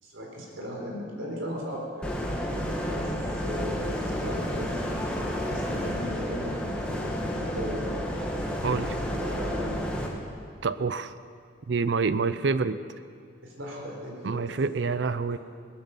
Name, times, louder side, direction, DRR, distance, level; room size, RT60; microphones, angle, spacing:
voice 1, 0.0-2.2 2.9-4.8 5.3-8.2 9.0-9.8 13.4-14.5 14.8-14.9 15.3-15.4, equal, 90° right, -1 dB, 4.3 m, -37 dB
sound 1, 2.0-10.1, equal, 5° left, 1.7 m, -31 dB
voice 2, 8.6-9.0 10.6-11.1 11.7-12.8 14.2-15.4, right 4 dB, 65° right, 13 dB, 0.5 m, -27 dB
19.0 x 10.5 x 7.2 m, 2.1 s
head